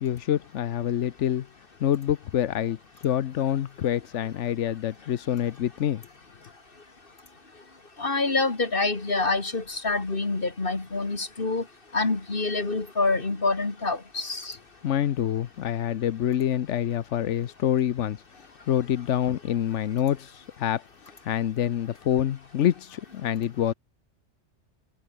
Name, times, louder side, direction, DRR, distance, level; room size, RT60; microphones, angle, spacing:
voice 1, 0.0-1.5 1.8-6.0 14.8-20.8 21.2-23.7, left 10 dB, 90° left, 1.1 m, -26 dB
voice 2, 8.0-11.6 11.9-14.5, left 3 dB, 50° left, 2.8 m, -26 dB
omnidirectional pair, 1.2 m